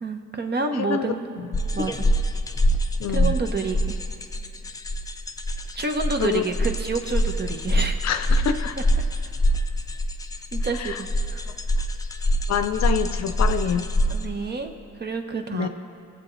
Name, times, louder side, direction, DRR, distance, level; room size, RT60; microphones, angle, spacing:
voice 1, 0.0-1.3 1.7-2.1 3.1-4.0 5.7-8.0 10.5-11.4 14.1-15.7, right 4 dB, 35° right, 5 dB, 0.9 m, -29 dB
voice 2, 0.8-1.1 3.0-3.4 6.2-6.4 8.0-8.8 10.7-11.0 12.5-13.9 15.5-15.7, left 8 dB, 60° left, 9 dB, 0.7 m, -26 dB
sound 1, 1.5-14.3, equal, 10° left, 0.6 m, -24 dB
19.5 x 7.8 x 3.2 m, 2.5 s
cardioid pair, 90°, 30 cm